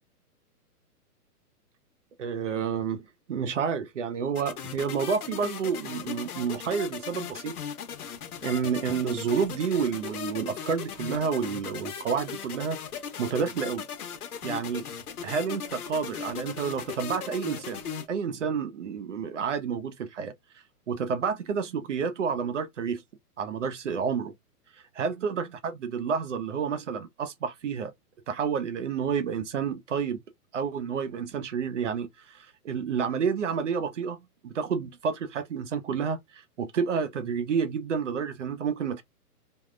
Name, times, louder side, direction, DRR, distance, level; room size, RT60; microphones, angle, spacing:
voice 1, 2.2-7.5 8.4-12.8 13.2-13.9 14.4-14.9 15.2-17.8 18.1-20.3 20.9-23.0 23.4-24.3 25.0-27.9 28.3-30.2 30.5-39.0, right 6 dB, 50° right, 0.6 m, -30 dB
sound 1, 4.4-18.1, left 7 dB, 70° left, 1.0 m, -38 dB
3.5 x 2.2 x 2.4 m
hypercardioid pair, 170°, 47 cm